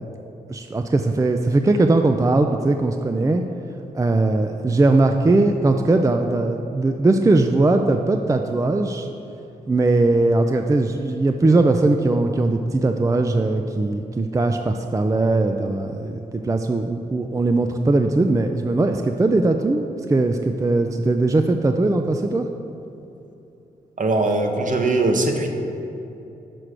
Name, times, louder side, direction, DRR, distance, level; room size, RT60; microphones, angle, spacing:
voice 1, 0.5-3.4 3.9-9.1 9.7-16.1 16.4-22.5, right 2 dB, 20° right, 5 dB, 0.4 m, -20 dB
voice 2, 24.0-25.5, right 2 dB, 50° right, 3 dB, 1.0 m, -20 dB
6.0 x 4.7 x 6.6 m, 2.9 s
supercardioid pair, 50°, 17 cm